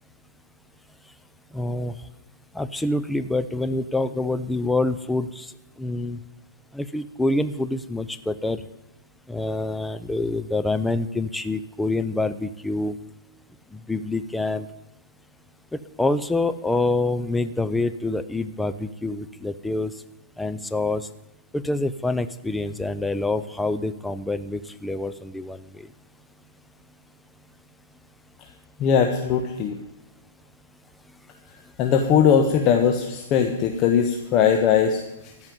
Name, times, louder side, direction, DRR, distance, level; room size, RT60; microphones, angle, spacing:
voice 1, 1.5-1.9 2.5-5.5 5.8-6.2 6.7-8.6 9.3-13.0 13.7-14.7 15.7-19.9 20.4-21.1 21.5-25.6, left 2 dB, 5° left, 12 dB, 0.6 m, -26 dB
voice 2, 28.8-29.8 31.8-35.3, left 7 dB, 35° left, 3 dB, 1.2 m, -20 dB
14.0 x 5.6 x 9.6 m, 0.99 s
hypercardioid pair, 130°, 0 cm